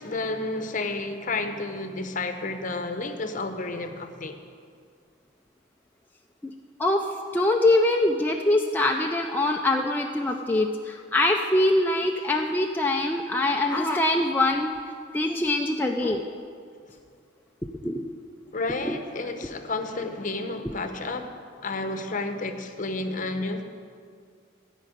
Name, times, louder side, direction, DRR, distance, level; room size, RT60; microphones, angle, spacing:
voice 1, 0.0-4.4 16.0-16.2 18.5-23.6, left 2 dB, 40° left, 7 dB, 0.8 m, -31 dB
voice 2, 7.3-14.7 15.1-16.2 17.8-18.0 18.8-19.0, left 2 dB, 10° left, 1 dB, 0.4 m, -23 dB
13.5 x 5.3 x 9.1 m, 2.2 s
head